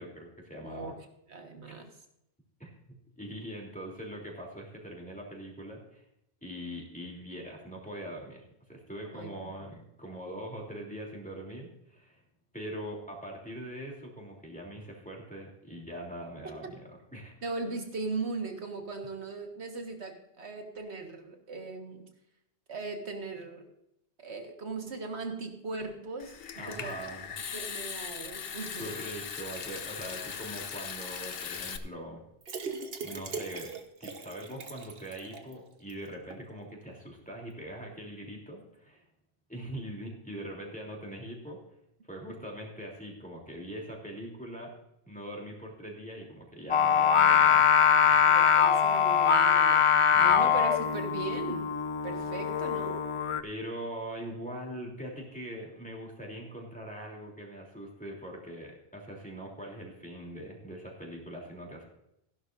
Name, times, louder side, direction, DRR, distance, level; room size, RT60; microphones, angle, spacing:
voice 1, 0.0-0.9 2.6-6.0 6.4-8.4 8.7-12.2 12.5-17.3 26.6-27.3 28.8-32.2 33.0-33.7 34.0-39.0 39.5-41.6 42.1-44.7 45.0-47.7 48.0-48.2 50.1-50.6 53.4-61.8, right 1 dB, 5° left, -2 dB, 3.2 m, -42 dB
voice 2, 0.6-1.9 9.1-9.3 17.4-22.1 22.7-23.7 24.2-27.0 27.5-28.9 48.2-51.7 52.0-53.0, right 3 dB, 85° right, 4 dB, 1.9 m, -38 dB
Water tap faucet / Sink (filling or washing) / Trickle dribble, 26.2-31.8, left 7 dB, 65° left, 1.0 m, -39 dB
sound 1, 32.4-35.5 35.9-36.0 36.3-36.4, right 4 dB, 65° right, 1.3 m, -40 dB
Singing, 46.7-53.4, left 8 dB, 40° left, 0.4 m, -23 dB
15.5 x 11.5 x 2.6 m, 0.80 s
omnidirectional pair, 1.1 m